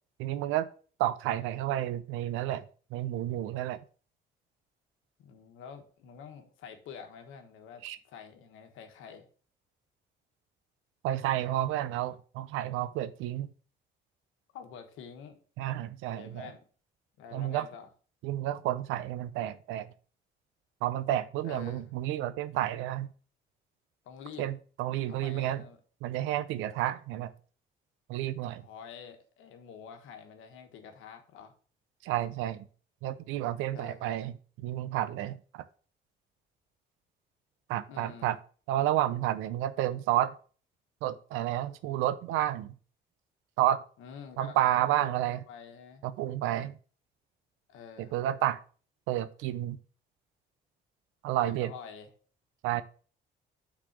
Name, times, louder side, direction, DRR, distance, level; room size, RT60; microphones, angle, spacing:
voice 1, 0.2-0.7 1.0-2.7 2.9-3.8 7.8-8.0 11.0-13.5 15.6-16.5 17.3-17.7 18.2-19.9 20.8-23.1 24.4-25.6 26.0-27.3 28.1-28.7 32.0-32.7 33.0-34.3 34.6-35.6 37.7-38.4 38.7-40.3 41.0-42.7 43.6-43.8 44.4-45.4 46.0-46.7 48.0-48.6 49.1-49.8 51.2-51.7 52.6-52.8, right 13 dB, 90° right, 14 dB, 0.6 m, -30 dB
voice 2, 5.2-9.3 14.5-15.4 16.1-16.6 17.2-17.9 21.4-21.8 24.0-24.5 25.1-25.8 28.6-31.5 33.7-34.2 37.9-38.3 44.0-46.0 47.7-48.1 51.4-52.1, left 7 dB, 85° left, 6 dB, 1.3 m, -47 dB
6.2 x 4.1 x 6.0 m, 0.41 s
supercardioid pair, 65°, 20 cm